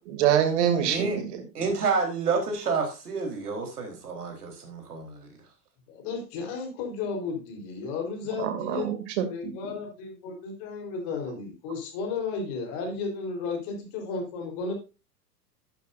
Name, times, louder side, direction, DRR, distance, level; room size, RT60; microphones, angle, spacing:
voice 1, 0.1-1.4 8.4-9.5, right 9 dB, 45° right, 8 dB, 2.7 m, -25 dB
voice 2, 0.9-1.2 1.5-5.3, right 4 dB, 65° right, 3 dB, 4.0 m, -29 dB
voice 3, 5.9-9.0 9.3-14.7, left 4 dB, 40° left, 2 dB, 3.9 m, -33 dB
11.5 x 10.5 x 2.6 m, 0.30 s
figure-of-eight pair, 100°, 49 cm